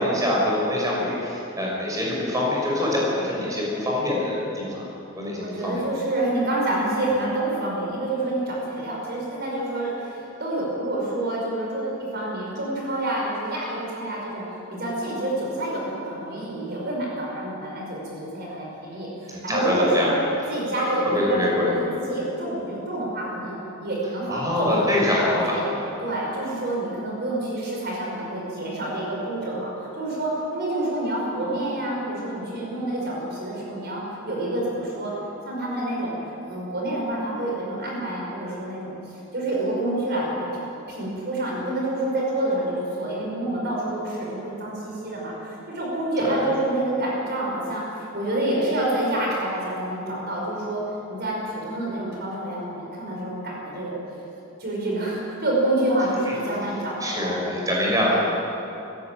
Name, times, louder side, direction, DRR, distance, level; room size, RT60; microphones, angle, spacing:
voice 1, 0.0-4.9 5.1-5.8 19.3-20.1 21.1-21.7 24.3-25.7 46.3-46.4 57.0-58.2, left 1 dB, 15° right, -4 dB, 6.0 m, -24 dB
voice 2, 5.4-20.2 20.5-23.6 23.8-25.7 26.0-35.1 35.5-36.2 36.4-39.0 39.3-40.5 40.9-50.8 51.1-54.0 54.6-57.4, right 1 dB, 50° right, -3 dB, 5.3 m, -28 dB
20.0 x 15.5 x 9.1 m, 2.9 s
head